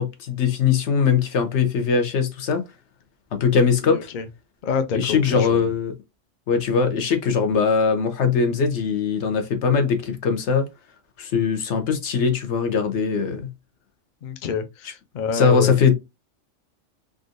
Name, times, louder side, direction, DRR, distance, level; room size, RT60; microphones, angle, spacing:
voice 1, 0.0-2.6 3.3-4.1 4.9-5.9 6.5-10.7 11.2-13.5 15.3-15.9, left 6 dB, 70° left, 1.0 m, -21 dB
voice 2, 3.8-4.2 4.6-5.7 14.2-15.7, left 5 dB, 55° left, 0.5 m, -28 dB
3.7 x 2.5 x 2.5 m
omnidirectional pair, 1.3 m